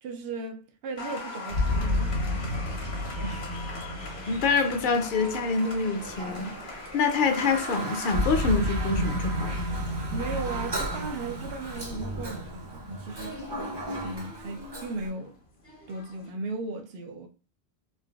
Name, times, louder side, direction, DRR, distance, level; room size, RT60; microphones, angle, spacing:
voice 1, 0.0-3.5 10.1-13.4 14.0-15.4 15.9-17.3, right 3 dB, 75° right, 0.8 m, -37 dB
Applause, 1.0-16.3, left 2 dB, 80° left, 1.2 m, -43 dB
sound 1, 1.5-6.5 8.1-13.8, left 1 dB, 60° right, 1.0 m, -31 dB
voice 2, 4.2-9.6, left 4 dB, 60° left, 0.6 m, -26 dB
Toilet flush, 6.0-15.1, right 2 dB, 30° right, 0.6 m, -37 dB
3.8 x 2.3 x 2.3 m
omnidirectional pair, 1.1 m